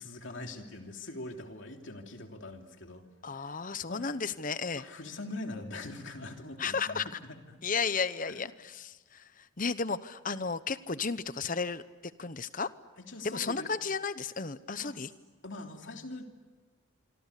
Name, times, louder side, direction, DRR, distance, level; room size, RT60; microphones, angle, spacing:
voice 1, 0.0-3.1 3.5-3.6 3.9-4.1 4.7-7.6 8.2-8.4 13.0-13.7 14.8-15.1 15.4-16.2, left 2 dB, 60° left, 3 dB, 3.2 m, -43 dB
voice 2, 3.2-4.8 6.6-7.1 7.6-9.2 9.6-11.8 12.2-12.7 13.2-15.1, left 5 dB, 40° left, 14 dB, 0.9 m, -33 dB
26.5 x 25.5 x 8.4 m, 1.4 s
head